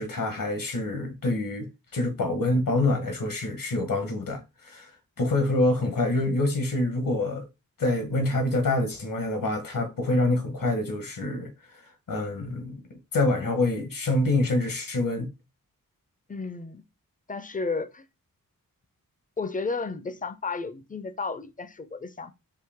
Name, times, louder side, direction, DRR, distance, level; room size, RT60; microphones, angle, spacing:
voice 1, 0.0-4.9 5.2-7.5 7.8-11.5 12.1-12.8 13.1-15.3, left 2 dB, 70° left, 1.2 m, -26 dB
voice 2, 16.3-16.8 17.3-18.1 19.4-22.3, left 4 dB, 25° left, 0.5 m, -32 dB
4.8 x 2.7 x 3.5 m
wide cardioid pair, 70°, 34 cm